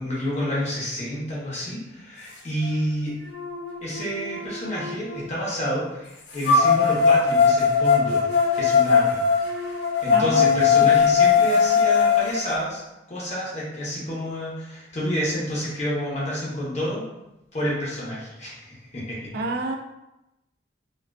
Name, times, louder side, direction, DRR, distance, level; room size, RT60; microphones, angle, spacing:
voice 1, 0.0-3.1 3.8-8.3 8.5-9.2 10.0-12.8 13.1-17.0 17.5-19.2, equal, 40° left, -6 dB, 0.8 m, -29 dB
sound 1, 2.6-2.7 3.3-5.2 6.4-12.5, left 6 dB, 65° left, 0.4 m, -20 dB
voice 2, 10.1-10.9 19.3-19.8, right 2 dB, 55° right, 3 dB, 0.3 m, -29 dB
2.4 x 2.2 x 2.3 m, 0.93 s
head